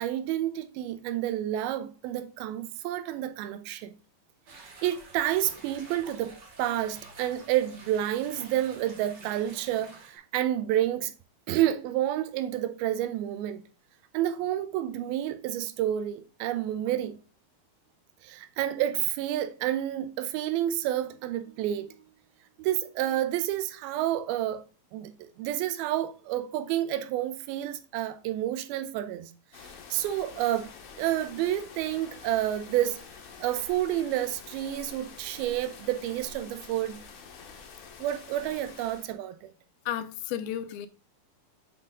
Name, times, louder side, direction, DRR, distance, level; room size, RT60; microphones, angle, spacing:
voice 1, 0.0-3.9 4.8-11.1 11.5-13.6 14.1-17.2 18.2-22.0 22.6-24.6 24.9-29.3 29.9-30.7 31.0-33.0 33.4-37.0 38.0-39.5, right 12 dB, 90° right, 2.5 m, -29 dB
sound 1, 4.5-10.2, right 3 dB, 70° right, 1.0 m, -49 dB
sound 2, 29.5-39.1, left 5 dB, 65° left, 2.0 m, -47 dB
voice 2, 39.9-40.9, left 10 dB, 85° left, 2.5 m, -33 dB
7.9 x 3.8 x 3.7 m
omnidirectional pair, 4.2 m